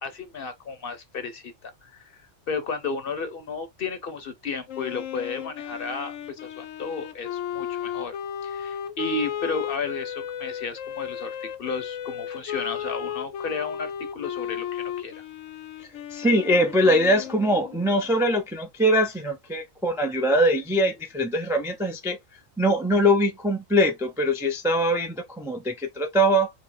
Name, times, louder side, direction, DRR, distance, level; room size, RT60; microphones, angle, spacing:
voice 1, 0.0-2.2 2.5-15.2, left 4 dB, 50° left, 0.9 m, -33 dB
Wind instrument woodwind instrument, 4.7-18.1, left 9 dB, 75° left, 1.0 m, -34 dB
voice 2, 16.1-22.2 22.6-26.5, equal, 5° right, 0.3 m, -22 dB
4.6 x 2.0 x 4.1 m
omnidirectional pair, 1.3 m